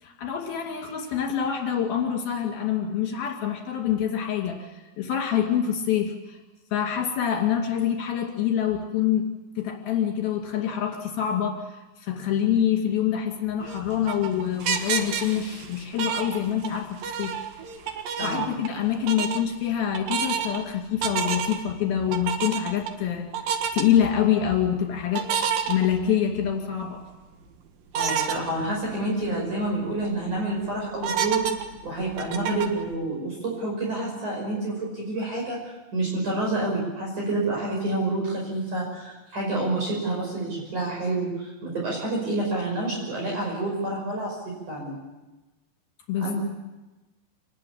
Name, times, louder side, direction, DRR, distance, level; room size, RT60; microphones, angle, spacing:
voice 1, 0.0-6.4 6.7-9.3 9.6-17.3 17.9-23.3 23.7-25.3 25.7-27.0 46.1-46.3, left 9 dB, 60° left, 2 dB, 4.2 m, -26 dB
sound 1, 13.6-16.8 17.0-18.8 19.1-19.4 19.9-20.6 21.0-21.7 22.1-22.9 23.3-23.8 25.1-26.4 26.8-26.9 27.9-28.4 28.9-29.0 29.2-29.3 29.8-30.2 31.0-32.8, right 7 dB, 60° right, 2.9 m, -28 dB
voice 2, 18.2-18.5 28.0-31.5 31.8-45.0 46.2-46.3, right 2 dB, 45° right, -2 dB, 6.9 m, -28 dB
26.5 x 19.5 x 8.7 m, 1.1 s
omnidirectional pair, 5.1 m